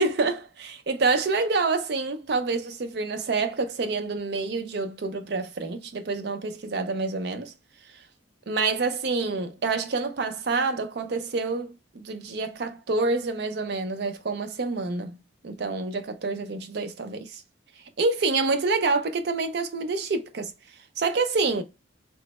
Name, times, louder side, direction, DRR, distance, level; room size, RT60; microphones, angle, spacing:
voice 1, 0.0-7.5 8.5-15.2 15.4-17.4 18.0-20.5 21.0-21.6, right 3 dB, 55° right, 0.4 m, -27 dB
3.2 x 2.0 x 2.9 m
head